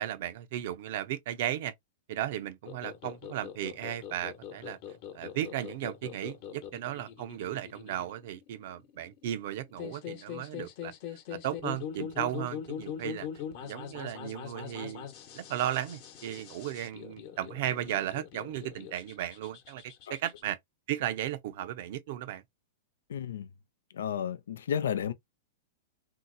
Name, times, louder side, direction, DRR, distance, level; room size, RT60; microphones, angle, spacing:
voice 1, 0.0-1.7 2.1-4.8 5.1-10.9 11.3-13.3 13.6-15.1 15.3-20.6 20.9-22.4, right 12 dB, 60° right, 0.6 m, -35 dB
sound 1, 2.7-20.4, left 9 dB, 50° left, 1.0 m, -42 dB
voice 2, 23.1-23.5 23.9-25.1, left 8 dB, 85° left, 0.4 m, -32 dB
2.7 x 2.0 x 3.9 m
hypercardioid pair, 135°, 0 cm